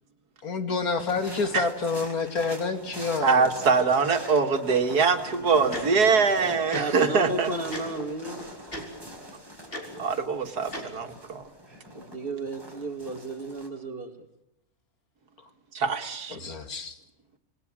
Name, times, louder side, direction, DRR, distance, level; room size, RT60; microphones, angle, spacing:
voice 1, 0.4-3.7 16.3-17.0, left 4 dB, 70° left, 8 dB, 2.7 m, -28 dB
sound 1, 1.0-13.7, equal, 15° right, 5.7 m, -44 dB
voice 2, 3.2-7.5 10.0-11.4 15.7-16.4, right 5 dB, 85° right, 8 dB, 2.4 m, -23 dB
voice 3, 5.4-8.5 11.9-14.1, right 2 dB, 35° right, 6 dB, 2.7 m, -34 dB
Tick-tock, 5.7-5.8 6.7-6.8 7.7-7.8 8.7-8.8 9.7-9.8 10.7-10.8, left 1 dB, 35° left, 4.9 m, -34 dB
27.5 x 20.5 x 7.5 m, 0.83 s
omnidirectional pair, 1.6 m